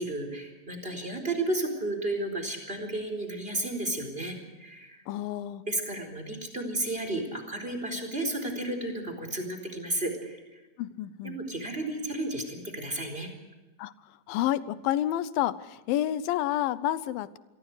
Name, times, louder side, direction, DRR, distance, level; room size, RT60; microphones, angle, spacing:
voice 1, 0.0-5.0 5.7-10.6 11.2-13.3, right 1 dB, 15° right, 5 dB, 4.2 m, -33 dB
voice 2, 5.1-5.6 10.8-11.4 13.8-13.9 14.3-17.4, left 12 dB, 90° left, 16 dB, 2.6 m, -29 dB
27.5 x 22.5 x 4.9 m, 1.1 s
omnidirectional pair, 4.0 m